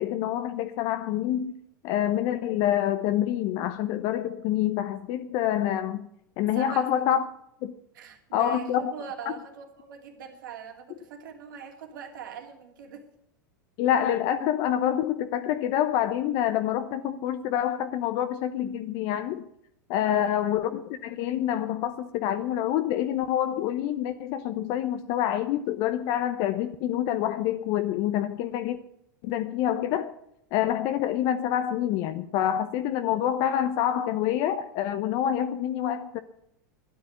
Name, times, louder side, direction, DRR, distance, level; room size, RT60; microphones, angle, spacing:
voice 1, 0.0-1.5 1.8-6.1 6.4-7.2 7.6-7.7 8.3-8.9 13.8-19.4 19.9-28.8 29.2-30.1 30.5-36.2, left 11 dB, 55° left, 0.8 m, -27 dB
voice 2, 6.5-7.2 7.9-13.0 20.0-20.3, right 7 dB, 75° right, 2.9 m, -41 dB
12.0 x 9.8 x 8.4 m
hypercardioid pair, 100°, 11 cm